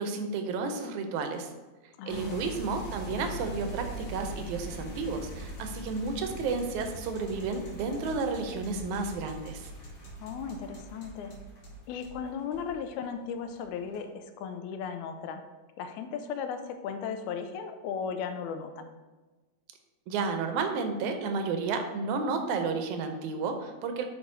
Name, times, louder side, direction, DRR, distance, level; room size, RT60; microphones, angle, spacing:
voice 1, 0.0-1.5 2.1-9.7 20.1-24.0, right 4 dB, 85° right, 6 dB, 2.1 m, -32 dB
voice 2, 2.0-2.6 10.2-11.4 11.9-15.4 15.8-18.9, left 6 dB, 90° left, 7 dB, 2.0 m, -36 dB
sound 1, 2.1-13.0 13.4-14.0, right 1 dB, 60° left, 1.1 m, -42 dB
8.6 x 4.2 x 2.6 m, 1.2 s
omnidirectional pair, 3.4 m